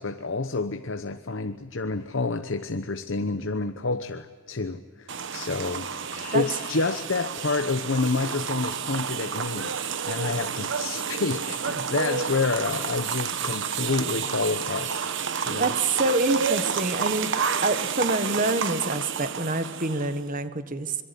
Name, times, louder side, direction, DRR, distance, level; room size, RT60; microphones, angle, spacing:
voice 1, 0.0-5.9 6.3-9.7 10.0-15.1 15.5-15.7, left 3 dB, 60° left, 8 dB, 0.9 m, -28 dB
sound 1, 5.1-20.2, right 6 dB, 55° right, 1.2 m, -30 dB
Livestock farm animals working animals, 6.0-7.1 9.9-10.9, left 5 dB, 40° left, 1.7 m, -47 dB
voice 2, 15.6-17.3 17.6-21.0, right 2 dB, 40° right, 10 dB, 1.5 m, -26 dB
26.0 x 22.5 x 8.4 m, 1.5 s
head